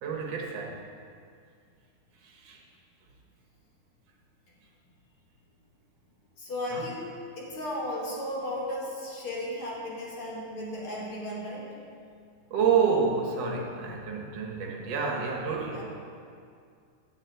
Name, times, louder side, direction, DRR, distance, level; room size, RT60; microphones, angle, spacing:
voice 1, 0.0-0.9 2.2-2.6 6.7-6.8 12.5-15.8, right 6 dB, 60° right, 0 dB, 2.1 m, -28 dB
voice 2, 6.4-11.8 15.7-15.8, left 1 dB, 45° left, -5 dB, 2.7 m, -35 dB
9.4 x 7.4 x 7.9 m, 2.3 s
omnidirectional pair, 3.7 m